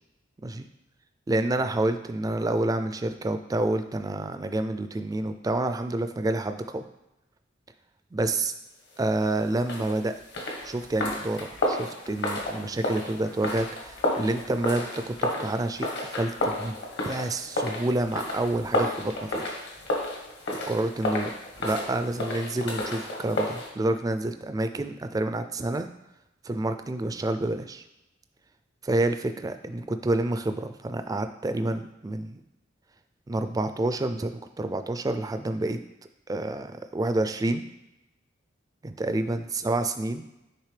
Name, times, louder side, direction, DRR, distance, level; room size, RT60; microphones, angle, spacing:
voice 1, 1.3-6.8 8.1-8.5 9.0-10.1 10.6-16.7 17.0-19.5 20.5-21.3 21.6-25.9 26.4-27.8 28.8-32.4 33.3-35.8 36.3-37.6 38.8-40.3, right 2 dB, 20° right, 8 dB, 0.3 m, -28 dB
sound 1, 9.6-23.7, left 1 dB, 60° left, 1.1 m, -32 dB
9.8 x 3.4 x 3.3 m, 0.92 s
head